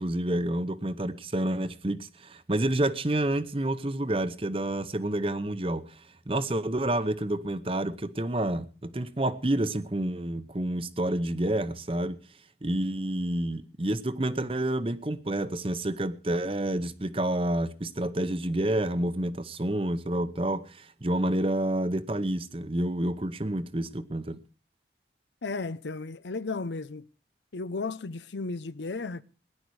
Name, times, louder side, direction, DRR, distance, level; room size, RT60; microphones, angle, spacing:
voice 1, 0.0-5.8 6.3-12.2 12.6-24.4, right 1 dB, 30° right, 0.8 m, -29 dB
voice 2, 25.4-27.0 27.5-29.2, left 3 dB, 90° left, 0.7 m, -34 dB
18.5 x 11.0 x 4.7 m
head